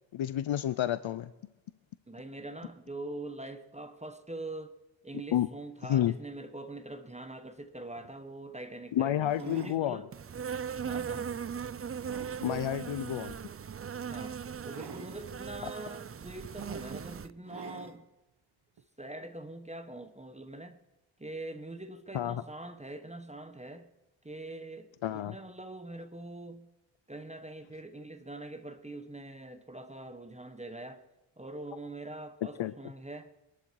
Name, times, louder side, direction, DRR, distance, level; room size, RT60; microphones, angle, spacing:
voice 1, 0.1-1.3 5.3-5.5 5.9-6.1 8.9-10.0 12.4-13.4 15.6-15.7 22.1-22.4 25.0-25.4 32.6-32.7, left 11 dB, 75° left, 15 dB, 0.7 m, -30 dB
voice 2, 2.1-4.7 5.0-10.1 10.8-11.4 12.4-12.7 14.1-18.1 19.0-20.8 21.2-23.9 24.2-26.7 27.1-31.0 31.4-33.3, right 2 dB, 15° right, 9 dB, 1.2 m, -43 dB
sound 1, 7.6-7.7 8.0-8.2 9.2-9.8 10.5-10.7 11.3-12.5 13.8-13.9 14.7-15.2 16.1-16.2 16.6-17.0 17.4-18.0 18.8-18.9, right 7 dB, 55° right, 1.1 m, -48 dB
Insect, 10.1-17.3, right 7 dB, 30° right, 0.5 m, -39 dB
23.0 x 11.5 x 4.7 m, 0.98 s
cardioid pair, 80°, 48 cm